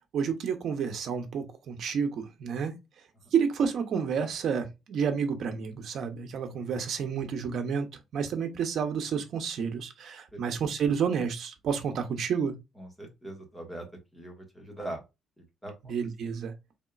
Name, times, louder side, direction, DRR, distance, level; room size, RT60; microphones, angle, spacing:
voice 1, 0.1-2.7 3.3-7.9 8.1-12.5 15.8-16.5, right 6 dB, 55° right, 0.9 m, -30 dB
voice 2, 12.8-13.9 14.1-15.0 15.6-15.7, right 1 dB, 5° left, 1.5 m, -40 dB
4.3 x 3.6 x 2.4 m
cardioid pair, 160°, 0 cm